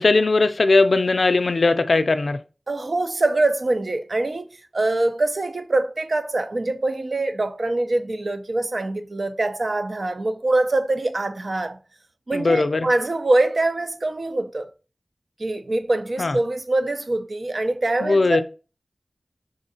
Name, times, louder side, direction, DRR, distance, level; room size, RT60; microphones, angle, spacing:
voice 1, 0.0-2.4 12.3-12.9 16.2-16.4 18.0-18.4, left 3 dB, 85° left, 0.4 m, -19 dB
voice 2, 2.7-11.8 12.3-14.7 15.4-18.4, right 2 dB, 65° right, 0.5 m, -24 dB
5.0 x 3.7 x 2.7 m
wide cardioid pair, 55°, 0 cm